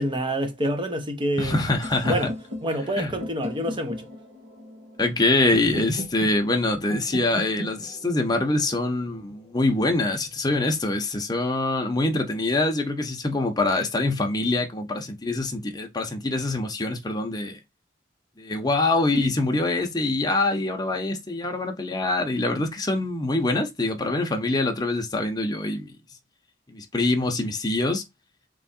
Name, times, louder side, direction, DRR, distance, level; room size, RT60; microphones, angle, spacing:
voice 1, 0.0-1.6 2.0-2.3 2.6-4.0, equal, 25° right, 0.9 m, -27 dB
voice 2, 1.4-2.3 3.0-3.1 5.0-17.6 18.4-26.0 26.7-28.0, left 2 dB, 20° left, 0.9 m, -24 dB
sound 1, 1.8-9.7, equal, 75° right, 2.2 m, -38 dB
3.6 x 3.1 x 4.3 m
head